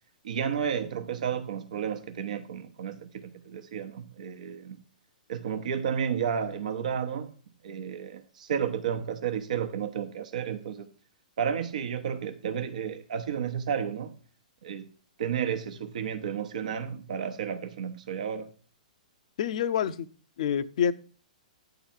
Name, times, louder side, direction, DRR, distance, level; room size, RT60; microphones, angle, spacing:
voice 1, 0.2-4.8 5.3-7.3 7.6-10.9 11.4-14.1 14.6-14.9 15.2-18.5, right 8 dB, 65° right, 1.0 m, -32 dB
voice 2, 19.4-20.1 20.4-20.9, left 8 dB, 60° left, 0.6 m, -27 dB
9.3 x 3.9 x 7.2 m
hypercardioid pair, 120°, 4 cm